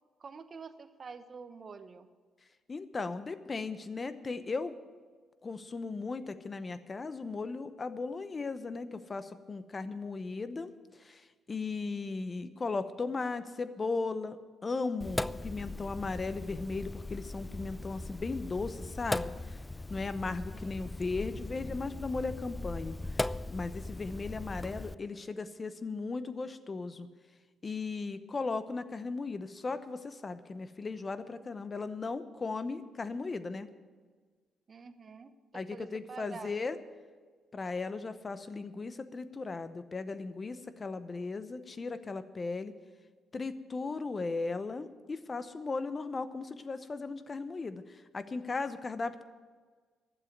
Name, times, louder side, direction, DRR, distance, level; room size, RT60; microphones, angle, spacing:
voice 1, 0.2-2.1 11.9-12.3 20.5-20.9 34.7-36.6, right 5 dB, 40° right, 10 dB, 0.9 m, -48 dB
voice 2, 2.7-4.8 5.4-10.7 11.0-11.2 11.5-14.4 14.6-19.6 19.9-23.0 23.5-27.1 27.6-33.7 35.5-36.8 37.5-42.7 43.3-47.8 48.1-49.2, left 3 dB, 30° left, 12 dB, 0.8 m, -37 dB
Sink (filling or washing), 15.0-24.9, left 2 dB, 10° left, 0.3 m, -39 dB
12.0 x 7.5 x 9.4 m, 1.5 s
cardioid pair, 90°, 0 cm